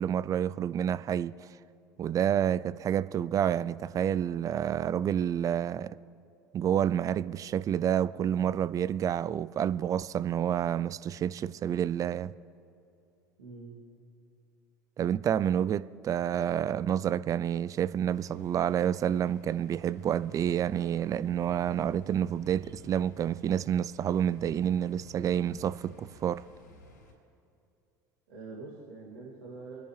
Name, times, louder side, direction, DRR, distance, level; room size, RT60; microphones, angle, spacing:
voice 1, 0.0-1.5 2.0-6.0 6.5-12.3 15.0-26.4, right 9 dB, 35° right, 0.4 m, -29 dB
voice 2, 13.4-13.8 28.3-29.8, right 3 dB, 80° right, 2.6 m, -44 dB
sound 1, 18.1-27.1, left 2 dB, 80° left, 3.9 m, -54 dB
27.5 x 10.5 x 3.3 m
hypercardioid pair, 70°, 10 cm